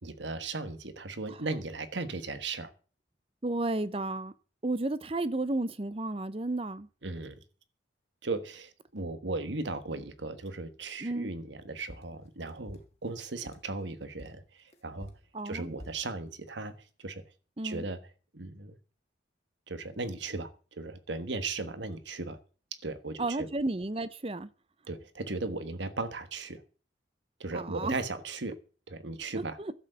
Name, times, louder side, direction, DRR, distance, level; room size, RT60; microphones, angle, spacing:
voice 1, 0.0-2.7 7.0-7.4 8.2-15.1 15.4-17.2 17.6-18.0 18.3-18.8 19.7-22.4 22.7-23.5 24.9-26.6 27.4-28.5 28.9-29.6, right 3 dB, 75° right, 1.3 m, -37 dB
voice 2, 3.4-4.3 4.6-6.9 11.0-11.3 15.3-15.7 17.6-17.8 23.2-24.5 27.5-28.0 29.3-29.7, right 2 dB, 30° right, 0.7 m, -32 dB
sound 1, 11.9-13.8 14.2-16.1, equal, 35° left, 1.5 m, -50 dB
12.0 x 8.0 x 7.7 m
head